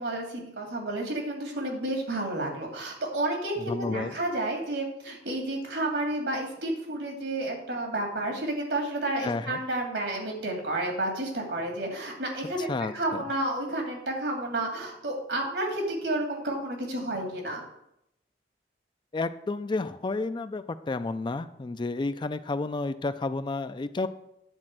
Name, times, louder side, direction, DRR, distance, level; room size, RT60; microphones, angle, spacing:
voice 1, 0.0-17.6, right 1 dB, 75° right, 1 dB, 2.6 m, -31 dB
voice 2, 3.6-4.1 9.2-9.6 12.6-13.2 19.1-24.1, left 3 dB, 25° left, 12 dB, 0.4 m, -31 dB
9.8 x 4.3 x 7.5 m, 0.79 s
head